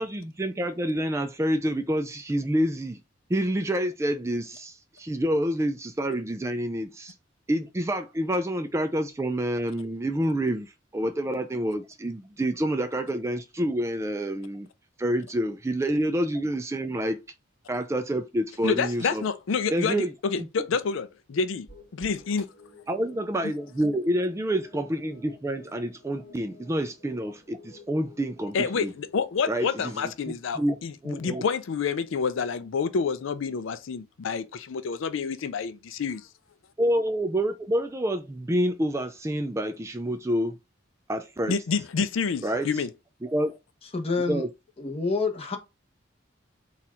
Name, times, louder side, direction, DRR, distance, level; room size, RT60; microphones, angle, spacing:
voice 1, 0.0-3.0 3.3-7.1 7.5-14.7 15.0-17.2 17.7-19.2 19.7-20.1 20.4-20.5 22.9-28.9 29.5-30.0 30.5-30.8 31.0-31.4 36.8-40.6 41.1-41.6 42.4-42.7 43.2-43.6 44.3-44.5, right 1 dB, 15° right, 0.3 m, -28 dB
voice 2, 18.6-21.7 21.9-22.5 28.5-36.3 41.5-42.9, left 5 dB, 75° left, 0.4 m, -28 dB
sound 1, 21.7-30.1, left 3 dB, 55° left, 1.9 m, -52 dB
voice 3, 43.9-44.4 44.8-45.6, left 4 dB, 30° left, 0.9 m, -27 dB
4.2 x 2.4 x 4.2 m
head